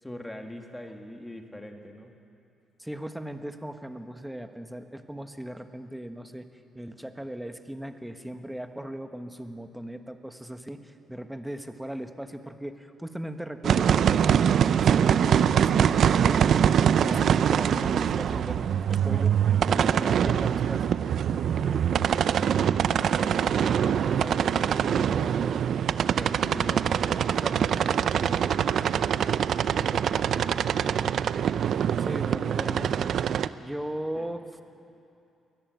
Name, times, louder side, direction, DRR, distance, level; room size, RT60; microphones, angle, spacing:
voice 1, 0.0-2.1 19.7-20.5 21.6-25.7 26.2-29.1 29.6-31.2 34.2-34.3, left 1 dB, 10° left, 4 dB, 2.2 m, -42 dB
voice 2, 2.8-16.6 16.9-19.4 19.7-21.0 32.0-33.2 33.6-34.4, right 1 dB, 5° right, 7 dB, 1.3 m, -38 dB
sound 1, 13.6-33.5, right 8 dB, 65° right, 0.5 m, -24 dB
22.0 x 14.5 x 9.3 m, 2.7 s
cardioid pair, 90°, 0 cm